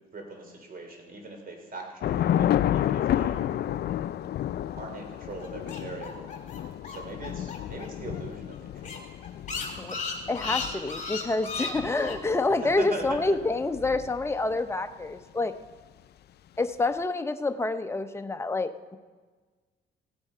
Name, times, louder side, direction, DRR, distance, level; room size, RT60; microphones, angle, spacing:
voice 1, 0.1-3.4 4.8-6.3 6.9-9.0 12.6-13.0, right 2 dB, 45° right, 2 dB, 3.2 m, -41 dB
Thunder / Rain, 2.0-14.5, left 11 dB, 55° left, 0.4 m, -31 dB
sound 1, 5.4-7.9 8.1-8.2 8.5-8.6 8.8-12.2, left 4 dB, 35° left, 2.7 m, -35 dB
voice 2, 10.3-15.5 16.6-19.0, left 3 dB, 15° left, 8 dB, 0.7 m, -28 dB
16.0 x 8.8 x 5.5 m, 1.4 s
cardioid pair, 90°, 20 cm